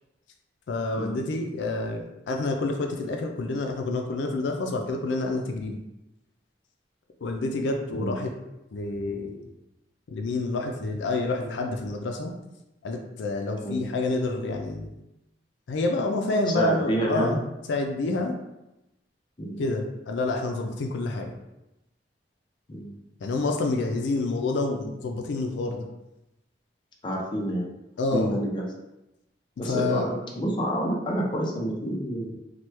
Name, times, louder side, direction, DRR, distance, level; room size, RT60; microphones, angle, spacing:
voice 1, 0.7-5.8 7.2-8.3 8.7-9.5 10.1-12.3 12.8-14.9 15.7-17.4 17.7-18.4 19.6-21.3 23.2-25.9 28.0-28.3 29.6-30.1, left 2 dB, 80° left, 3 dB, 0.4 m, -28 dB
voice 2, 16.5-17.4 18.1-18.2 19.4-19.6 22.7-22.9 27.0-27.7 28.1-28.6 29.6-32.3, equal, 25° left, -2 dB, 0.5 m, -28 dB
2.9 x 2.2 x 3.1 m, 0.93 s
head